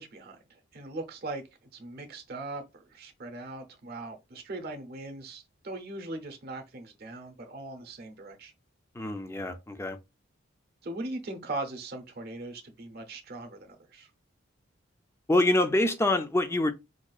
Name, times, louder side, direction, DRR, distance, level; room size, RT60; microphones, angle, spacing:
voice 1, 0.0-1.4 1.7-8.5 10.8-14.1, right 2 dB, 50° right, 0.7 m, -40 dB
voice 2, 9.0-10.0 15.3-16.7, left 1 dB, 10° left, 0.3 m, -25 dB
4.7 x 2.3 x 2.3 m
head